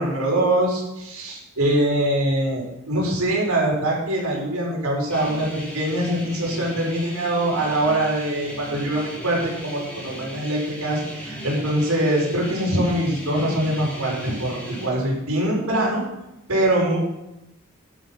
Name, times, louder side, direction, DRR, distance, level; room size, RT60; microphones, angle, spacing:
voice 1, 0.0-5.5 5.7-16.0 16.5-17.0, right 1 dB, 85° right, -3 dB, 5.2 m, -23 dB
sound 1, 5.1-14.9, equal, 5° left, 3.2 m, -37 dB
12.0 x 8.8 x 5.8 m, 0.92 s
head